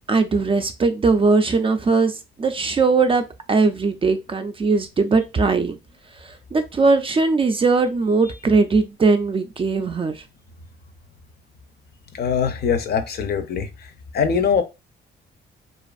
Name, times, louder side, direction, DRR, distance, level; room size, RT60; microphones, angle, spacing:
voice 1, 0.1-5.8 6.2-10.2, right 4 dB, 25° right, 0.4 m, -20 dB
voice 2, 12.2-13.7 14.1-14.6, left 6 dB, 55° left, 0.5 m, -21 dB
2.5 x 2.4 x 2.4 m
cardioid pair, 90°, 20 cm